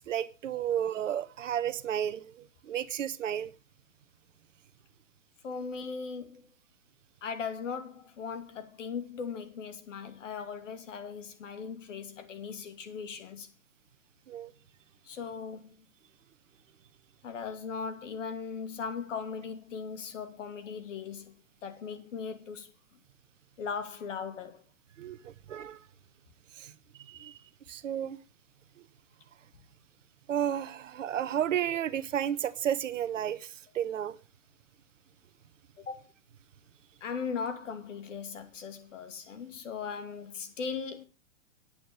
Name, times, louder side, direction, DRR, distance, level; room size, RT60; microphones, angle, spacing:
voice 1, 0.1-3.5 14.3-14.5 25.0-25.8 26.6-26.7 27.0-27.4 27.7-28.2 30.3-34.2, right 10 dB, 65° right, 1.1 m, -32 dB
voice 2, 5.4-6.4 7.2-13.5 15.0-15.8 17.2-21.3 21.6-22.7 23.6-24.6 35.8-36.1 37.0-41.0, left 6 dB, 65° left, 2.6 m, -38 dB
9.7 x 8.8 x 6.8 m
hypercardioid pair, 125°, 41 cm